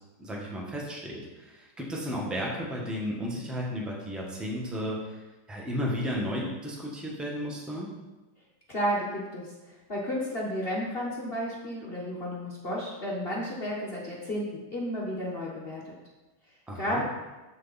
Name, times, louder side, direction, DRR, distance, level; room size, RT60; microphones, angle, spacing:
voice 1, 0.2-7.9 16.7-17.0, equal, ahead, -3 dB, 1.2 m, -34 dB
voice 2, 8.7-15.9 16.8-17.0, equal, 35° left, -4 dB, 1.2 m, -32 dB
13.5 x 4.7 x 4.2 m, 1.1 s
omnidirectional pair, 2.2 m